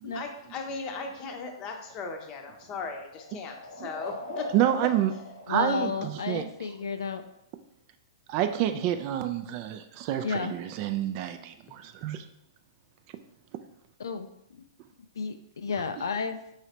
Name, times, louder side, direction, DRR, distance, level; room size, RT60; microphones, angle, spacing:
voice 1, 0.1-4.5, left 4 dB, 30° left, 4 dB, 0.7 m, -37 dB
sound 1, 2.6-6.6, left 2 dB, 90° left, 1.1 m, -42 dB
voice 2, 4.5-5.1 5.5-6.5 8.3-12.2, right 11 dB, 40° right, 9 dB, 0.3 m, -28 dB
voice 3, 5.5-7.2 10.2-10.5 14.0-14.3 15.2-16.5, left 5 dB, 70° left, 9 dB, 0.3 m, -32 dB
4.7 x 3.2 x 2.8 m, 0.79 s
figure-of-eight pair, 110°, 2 cm